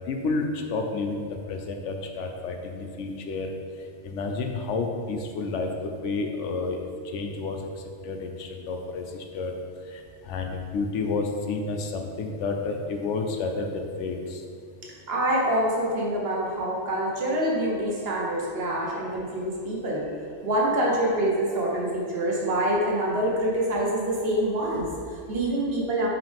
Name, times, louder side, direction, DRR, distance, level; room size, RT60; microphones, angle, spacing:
voice 1, 0.1-3.5 4.0-7.6 8.0-9.5 9.9-14.4, left 3 dB, 75° left, 4 dB, 0.9 m, -30 dB
voice 2, 15.1-20.1 20.4-26.1, right 1 dB, 55° right, -3 dB, 1.2 m, -26 dB
5.6 x 4.9 x 3.5 m, 2.3 s
omnidirectional pair, 1.3 m